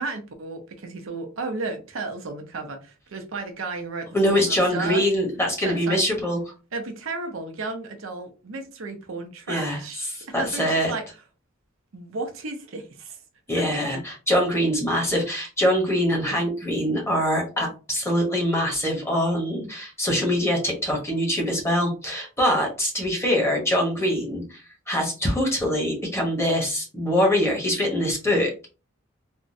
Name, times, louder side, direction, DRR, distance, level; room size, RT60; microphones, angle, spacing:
voice 1, 0.0-5.0 5.6-6.0 6.7-10.1 10.4-11.0 11.9-13.2 13.7-14.0, right 3 dB, 80° right, 0.7 m, -33 dB
voice 2, 4.1-6.4 9.5-10.9 13.5-28.7, equal, 15° left, 1.0 m, -24 dB
3.5 x 2.1 x 2.6 m
head